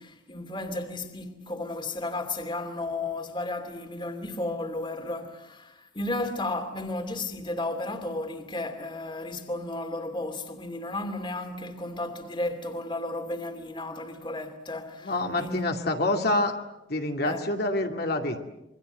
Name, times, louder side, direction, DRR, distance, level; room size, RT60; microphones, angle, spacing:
voice 1, 0.0-15.7 17.2-17.4, left 2 dB, 25° left, 2.7 m, -33 dB
voice 2, 15.0-16.6 16.9-18.5, left 2 dB, 55° left, 2.5 m, -27 dB
28.0 x 24.0 x 8.1 m
head